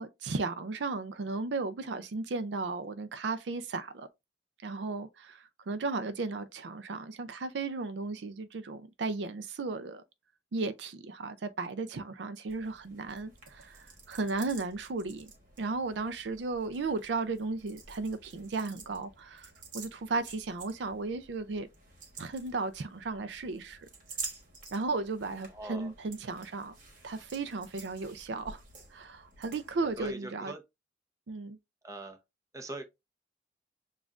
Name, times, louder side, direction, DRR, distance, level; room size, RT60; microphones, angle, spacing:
voice 1, 0.0-4.1 4.6-10.0 10.5-15.3 15.6-21.7 22.2-23.9 24.7-26.7 27.0-28.6 28.9-30.5 31.3-31.6, right 3 dB, 75° right, 0.5 m, -35 dB
sound 1, 12.5-30.1, right 4 dB, 50° right, 1.3 m, -50 dB
voice 2, 25.5-25.9 30.0-30.6 31.8-32.2 32.5-32.8, right 2 dB, 20° right, 0.7 m, -41 dB
7.1 x 2.4 x 2.4 m
head